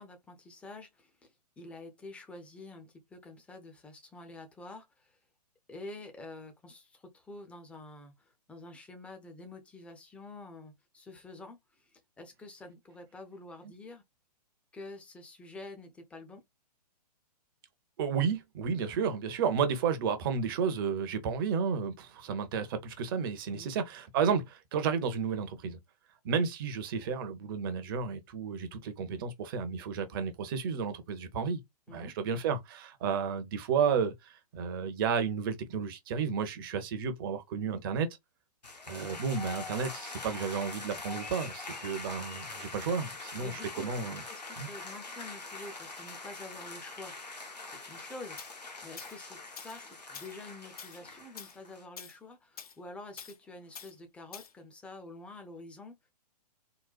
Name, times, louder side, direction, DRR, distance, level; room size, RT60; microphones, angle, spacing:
voice 1, 0.0-5.2 5.7-14.0 14.7-16.4 23.5-23.7 31.9-32.1 43.4-47.1 47.7-56.0, left 2 dB, 5° left, 0.5 m, -48 dB
voice 2, 18.0-25.8 26.2-31.6 31.9-38.1 38.9-44.2 44.6-44.7, right 6 dB, 35° right, 0.7 m, -32 dB
sound 1, 38.6-51.8, left 3 dB, 80° left, 1.0 m, -44 dB
Tools, 48.4-48.5 49.0-49.2 49.6-49.8 50.1-50.3 50.8-51.0 51.4-51.6 52.0-52.2 52.6-52.7 53.2-53.4 53.7-53.9 54.3-54.5, left 7 dB, 65° left, 0.6 m, -46 dB
3.9 x 2.1 x 2.3 m
figure-of-eight pair, 120°, 21 cm